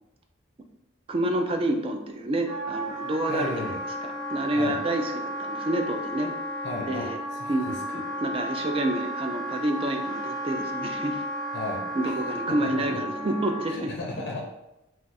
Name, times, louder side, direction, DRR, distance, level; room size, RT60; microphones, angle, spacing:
voice 1, 1.1-3.7 4.0-6.3 6.9-7.2 7.5-11.2 12.0-13.9, right 1 dB, 30° right, 4 dB, 0.3 m, -28 dB
Wind instrument woodwind instrument, 2.5-13.8, equal, 5° left, 0.7 m, -33 dB
voice 2, 3.3-3.8 4.5-4.8 6.6-7.1 7.4-7.5 11.5-12.1 12.5-12.7 13.7-14.4, left 2 dB, 60° left, -1 dB, 0.5 m, -34 dB
2.4 x 2.3 x 4.0 m, 0.91 s
head